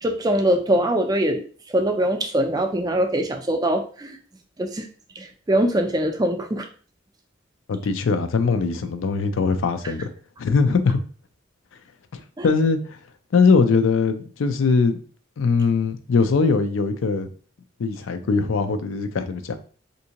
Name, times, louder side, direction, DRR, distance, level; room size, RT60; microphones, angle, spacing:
voice 1, 0.0-4.2 4.6-4.9 5.2-6.7 9.8-9.9 12.4-12.5, right 1 dB, 20° right, 0.4 m, -23 dB
voice 2, 7.7-10.1 10.4-11.0 12.4-12.8 13.3-15.0 15.4-17.3 17.8-19.6, left 4 dB, 85° left, 0.4 m, -21 dB
3.5 x 2.6 x 2.8 m
head